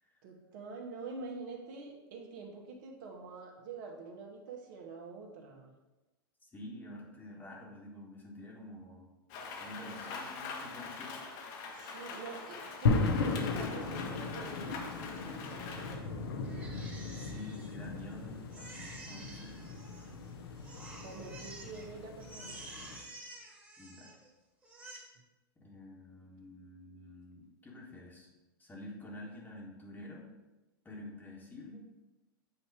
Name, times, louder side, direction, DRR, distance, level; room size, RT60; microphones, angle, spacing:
voice 1, 0.2-5.7 11.7-16.2 20.6-22.7, right 4 dB, 60° right, 2 dB, 1.5 m, -47 dB
voice 2, 6.4-9.1 9.6-11.7 17.1-19.7 23.8-24.2 25.6-28.3 28.6-30.3 30.8-31.9, left 1 dB, 15° left, -4 dB, 1.4 m, -49 dB
Rain, 9.3-15.9, left 4 dB, 55° left, 1.3 m, -44 dB
sound 1, 12.9-23.0, left 4 dB, 80° left, 1.1 m, -36 dB
Crying sobbing, 16.4-18.1 18.5-20.3 20.6-21.9 22.2-24.3 24.6-25.0, right 2 dB, 15° right, 1.7 m, -50 dB
8.3 x 2.9 x 4.8 m, 1.0 s
hypercardioid pair, 110°, 12 cm